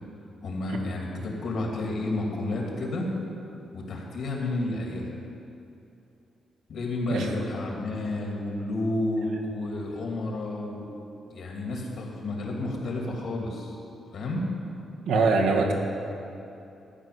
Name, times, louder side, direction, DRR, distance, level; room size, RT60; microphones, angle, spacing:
voice 1, 0.4-3.1 3.7-5.2 6.7-10.9 11.3-13.8 14.1-14.4, left 2 dB, 55° left, -1 dB, 2.6 m, -31 dB
voice 2, 15.1-15.7, right 4 dB, 90° right, 0 dB, 1.8 m, -22 dB
14.0 x 6.4 x 9.5 m, 2.8 s
wide cardioid pair, 175°, 0 cm